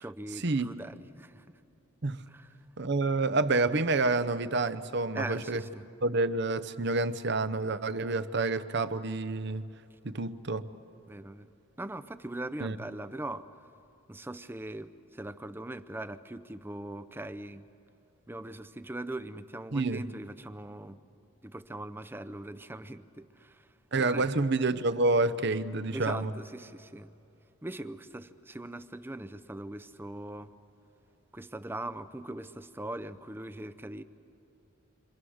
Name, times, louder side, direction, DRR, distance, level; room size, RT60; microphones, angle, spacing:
voice 1, 0.0-1.6 2.3-2.6 5.1-5.9 9.9-10.0 11.1-11.5 11.8-13.5 14.1-17.7 18.3-21.0 21.4-24.3 25.9-27.1 27.6-30.5 31.3-34.0, right 1 dB, 10° right, 0.5 m, -41 dB
voice 2, 2.8-5.6 6.0-9.6 10.0-10.7 12.6-12.7 19.7-20.0 23.9-26.3, right 3 dB, 50° right, 0.8 m, -28 dB
29.0 x 26.0 x 6.4 m
head